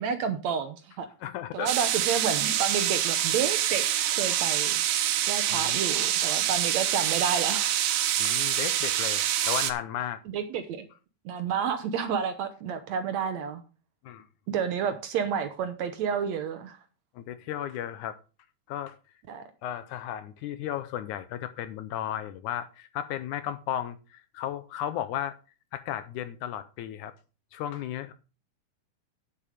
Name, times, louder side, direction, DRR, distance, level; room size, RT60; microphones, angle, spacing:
voice 1, 0.0-1.1 1.5-4.8 5.3-7.7 10.3-10.9 11.3-13.6 14.5-16.8 19.3-19.4, right 7 dB, 65° right, 1.9 m, -30 dB
voice 2, 1.2-1.7 5.5-5.8 8.2-10.2 14.0-14.3 17.2-18.2 18.7-19.0 19.6-25.4 25.7-27.1 27.5-28.1, left 11 dB, 75° left, 2.0 m, -34 dB
sound 1, 1.7-9.7, right 11 dB, 85° right, 2.6 m, -26 dB
10.0 x 7.3 x 5.0 m
omnidirectional pair, 3.9 m